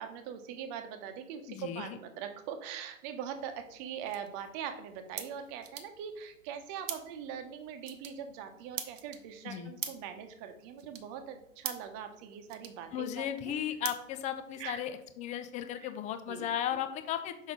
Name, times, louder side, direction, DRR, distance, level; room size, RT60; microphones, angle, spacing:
voice 1, 0.0-13.5 14.6-14.8 15.8-15.9 16.3-16.5, right 8 dB, 35° right, 7 dB, 1.0 m, -42 dB
voice 2, 1.5-2.0 9.4-9.7 12.9-17.5, left 10 dB, 20° left, 10 dB, 0.5 m, -36 dB
sound 1, 3.3-14.8, right 8 dB, 65° right, 1.1 m, -46 dB
6.1 x 5.5 x 3.8 m, 0.80 s
figure-of-eight pair, 100°, 42 cm